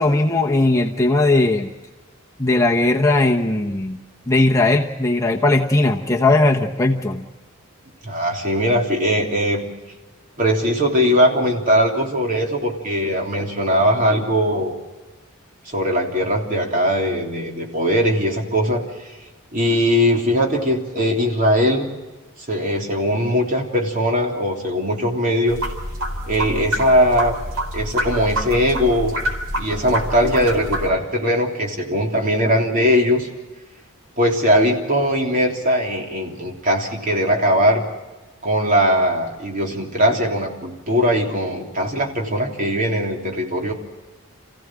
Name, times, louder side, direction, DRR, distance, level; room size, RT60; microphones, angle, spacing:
voice 1, 0.0-1.7 2.4-4.0 4.3-7.2, left 2 dB, 15° left, 0 dB, 1.1 m, -18 dB
voice 2, 8.0-9.6 10.4-14.7 15.6-19.1 19.5-21.9 22.5-25.6 26.3-27.3 27.7-29.2 29.6-33.3 34.2-37.8 38.4-43.7, equal, 40° right, 0 dB, 3.3 m, -20 dB
sound 1, 25.5-30.9, equal, 85° right, 4.1 m, -27 dB
27.5 x 16.0 x 7.6 m, 1.2 s
head